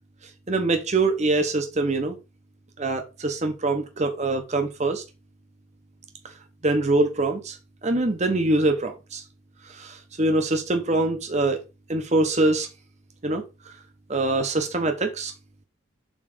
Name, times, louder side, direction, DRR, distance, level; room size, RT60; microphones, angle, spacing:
voice 1, 0.5-2.2 2.8-5.0 6.6-7.6 7.8-9.2 9.6-11.6 11.9-12.7 13.2-13.7 14.1-15.3, right 2 dB, 35° right, 0.9 m, -24 dB
7.2 x 3.3 x 5.0 m
head